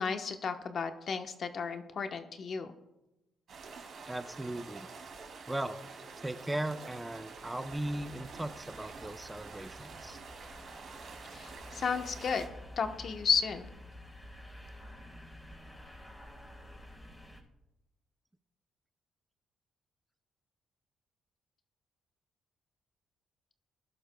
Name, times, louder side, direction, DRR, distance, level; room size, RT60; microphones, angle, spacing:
voice 1, 0.0-2.7 11.3-12.4 12.8-13.7, left 5 dB, 55° left, 6 dB, 1.1 m, -33 dB
sound 1, 3.5-12.5, right 4 dB, 60° right, 2.8 m, -48 dB
voice 2, 4.1-4.9 5.5-5.8 6.2-10.2, right 1 dB, 10° right, 10 dB, 0.7 m, -37 dB
sound 2, 7.6-17.4, left 1 dB, 15° left, 4.2 m, -50 dB
21.0 x 11.5 x 2.3 m, 0.93 s
cardioid pair, 90°, 0 cm